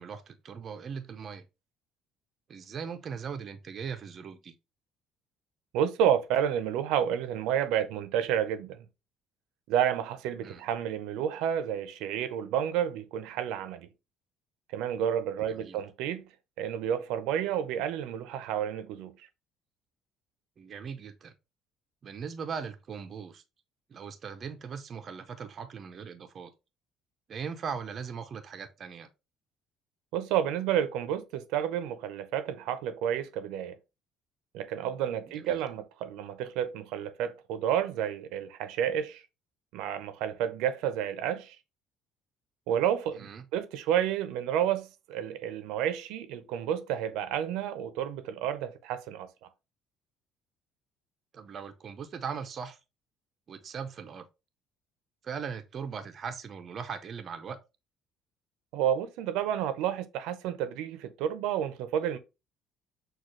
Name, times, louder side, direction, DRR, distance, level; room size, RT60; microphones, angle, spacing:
voice 1, 0.0-1.5 2.5-4.5 10.4-10.6 15.5-15.8 20.6-21.3 22.0-23.4 23.9-26.5 27.3-29.1 35.4-35.6 43.2-43.4 51.3-52.8 53.5-54.3 55.2-57.6, right 6 dB, 30° right, 0.5 m, -39 dB
voice 2, 5.7-8.8 9.7-13.9 14.7-16.2 16.6-19.3 30.1-33.8 34.5-39.2 39.7-41.6 42.7-49.3 58.7-62.2, right 9 dB, 85° right, 0.6 m, -30 dB
6.3 x 2.3 x 3.1 m
cardioid pair, 165°, 0 cm